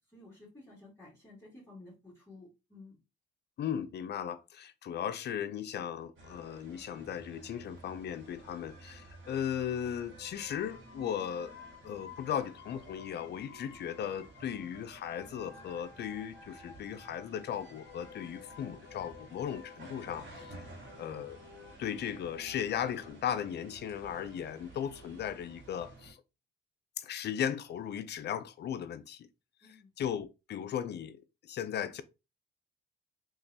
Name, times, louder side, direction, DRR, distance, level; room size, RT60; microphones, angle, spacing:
voice 1, 0.1-3.0 29.6-29.9, left 2 dB, 15° left, 2.2 m, -53 dB
voice 2, 3.6-11.5 11.8-20.7 21.0-21.4 21.8-26.2 27.0-29.3 30.0-31.2 31.4-32.0, left 9 dB, 60° left, 0.5 m, -37 dB
sound 1, 6.2-26.1, right 2 dB, 75° right, 1.8 m, -53 dB
sound 2, 8.0-23.1, left 6 dB, 40° left, 1.4 m, -55 dB
3.8 x 3.0 x 2.7 m
cardioid pair, 90°, 20 cm